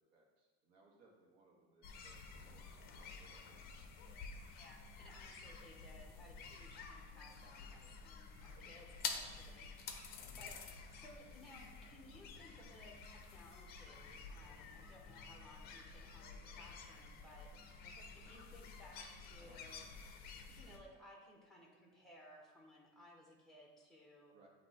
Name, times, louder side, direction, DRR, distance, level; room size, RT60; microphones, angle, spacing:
voice 1, 0.1-3.4 10.5-10.6 19.4-19.6 24.3-24.5, right 3 dB, 70° right, -1 dB, 1.5 m, -68 dB
sound 1, 1.8-20.8, left 5 dB, 30° left, 0.5 m, -51 dB
voice 2, 4.5-10.1 10.4-17.9 18.1-19.9 20.3-24.3, left 1 dB, ahead, -1 dB, 0.8 m, -60 dB
8.2 x 2.9 x 4.2 m, 1.3 s
cardioid pair, 170°, 32 cm